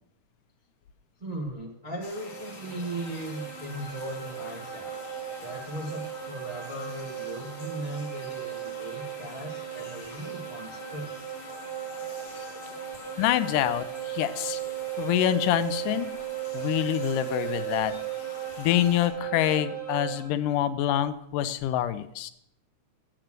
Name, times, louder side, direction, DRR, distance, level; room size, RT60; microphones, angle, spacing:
voice 1, 1.2-4.9 5.4-11.1, right 1 dB, 25° right, -2 dB, 0.8 m, -38 dB
sound 1, 1.9-20.2, right 11 dB, 45° right, 6.2 m, -37 dB
sound 2, 2.0-19.1, left 3 dB, 55° left, 3.2 m, -47 dB
voice 2, 13.2-14.6 15.0-16.1 16.5-17.9 18.6-22.3, left 12 dB, 85° left, 12 dB, 2.3 m, -26 dB
8.9 x 8.0 x 7.5 m, 0.73 s
omnidirectional pair, 3.6 m